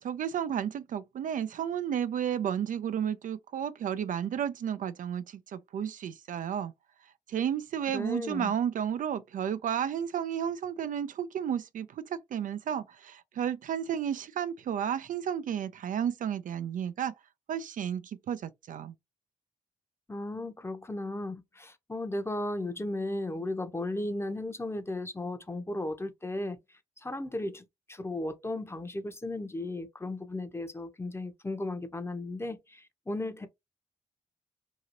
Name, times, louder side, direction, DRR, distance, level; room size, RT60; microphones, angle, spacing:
voice 1, 0.0-6.7 7.0-17.1 17.5-18.9, right 9 dB, 50° right, 0.4 m, -32 dB
voice 2, 7.9-8.5 20.1-26.6 27.0-33.5, left 2 dB, 15° left, 0.8 m, -35 dB
2.9 x 2.8 x 2.5 m
hypercardioid pair, 40°, 17 cm